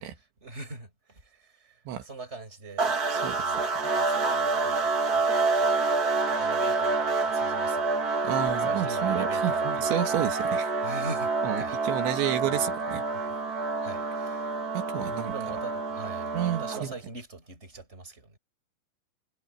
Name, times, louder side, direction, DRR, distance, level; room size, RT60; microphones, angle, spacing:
voice 1, 0.2-5.3 5.6-5.7 6.3-8.3 8.6-10.1 10.8-11.8 12.4-12.6 13.3-13.4 13.8-14.6 15.2-18.4, right 3 dB, 15° right, 5.7 m, -42 dB
sound 1, 2.8-17.0, right 3 dB, 40° right, 1.3 m, -27 dB
voice 2, 8.2-10.7 11.4-13.0 14.7-15.3 16.3-16.9, right 11 dB, 80° right, 3.9 m, -30 dB
omnidirectional pair, 5.2 m